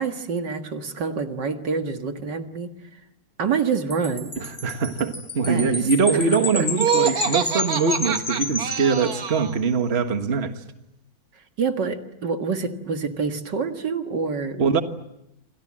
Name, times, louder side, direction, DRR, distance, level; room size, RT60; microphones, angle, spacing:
voice 1, 0.0-2.7 3.4-4.3 5.5-6.7 7.0-7.3 11.6-14.8, right 5 dB, 70° right, 2.5 m, -27 dB
Wind chime, 3.9-9.6, left 2 dB, 20° left, 1.4 m, -31 dB
voice 2, 4.6-10.5 14.6-14.8, right 5 dB, 35° right, 1.8 m, -22 dB
Laughter, 6.7-9.6, right 7 dB, 55° right, 1.8 m, -26 dB
29.0 x 26.5 x 7.6 m
omnidirectional pair, 1.9 m